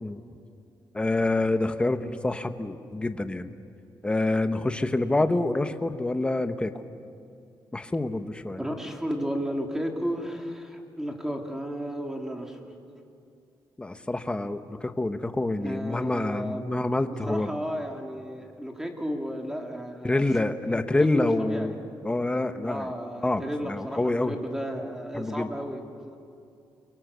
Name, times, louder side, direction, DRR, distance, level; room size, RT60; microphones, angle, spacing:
voice 1, 0.9-3.5 4.0-6.7 7.7-8.6 13.8-17.5 20.0-21.7 22.0-22.9 23.2-24.4 25.1-25.5, left 2 dB, 15° left, 9 dB, 1.1 m, -27 dB
voice 2, 8.6-12.7 15.6-20.3 21.1-21.8 22.6-26.2, equal, 5° right, 2 dB, 2.8 m, -33 dB
29.0 x 23.5 x 6.9 m, 2.5 s
cardioid pair, 125°, 8 cm